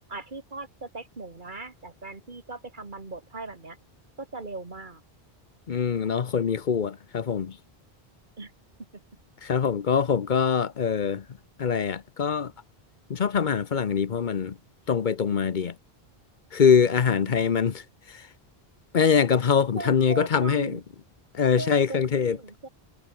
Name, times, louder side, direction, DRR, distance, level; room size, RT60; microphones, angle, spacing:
voice 1, 0.1-3.8 4.2-5.0 8.4-8.5 19.7-20.8 21.6-22.7, right 3 dB, 50° right, 2.3 m, -39 dB
voice 2, 5.7-7.6 9.4-11.3 11.6-12.5 13.1-14.6 14.9-15.8 16.5-18.3 18.9-20.8 21.3-22.4, left 6 dB, 50° left, 0.9 m, -23 dB
omnidirectional pair, 1.0 m